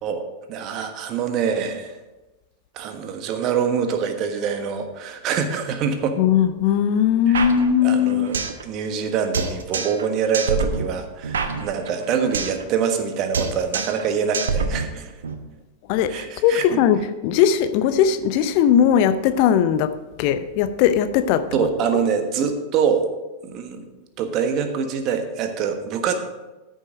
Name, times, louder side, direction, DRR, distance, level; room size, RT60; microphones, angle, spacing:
voice 1, 0.5-1.9 2.7-6.2 7.3-7.5 7.8-15.1 16.1-16.8 21.5-23.1 23.4-23.8 24.2-26.1, right 6 dB, 40° right, 7 dB, 1.3 m, -25 dB
voice 2, 6.2-8.3 15.9-21.5, left 9 dB, 45° left, 12 dB, 0.6 m, -19 dB
sound 1, 7.3-8.6 8.9-9.0 9.3-10.1 10.3-12.6 12.9-13.1 13.3-14.1 14.3-15.3, right 5 dB, 65° right, 1.0 m, -26 dB
13.5 x 6.4 x 5.1 m, 1.1 s
figure-of-eight pair, 90°, 0 cm